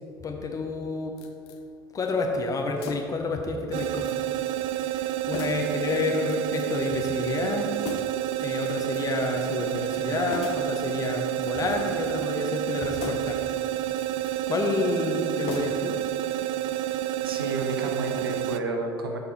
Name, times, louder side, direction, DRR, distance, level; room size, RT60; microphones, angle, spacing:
voice 1, 0.2-1.2 1.9-4.2 4.8-7.8 8.4-13.6 14.5-16.0, left 4 dB, 30° left, 2 dB, 1.1 m, -29 dB
sound 1, 1.2-1.6 2.8-3.3 3.7-4.2 4.4-4.6 5.3-5.7 6.3-6.8 7.8-8.3 8.6-9.2 10.3-10.7 11.3-12.0 12.9-13.4 13.9-14.4 15.4-16.0 16.3-16.4, left 5 dB, 55° left, 0.7 m, -39 dB
sound 2, 3.7-18.6, right 13 dB, 50° right, 0.4 m, -29 dB
voice 2, 17.2-19.2, right 2 dB, 80° right, 3 dB, 0.8 m, -31 dB
12.0 x 4.0 x 4.3 m, 2.5 s
figure-of-eight pair, 65°, 12 cm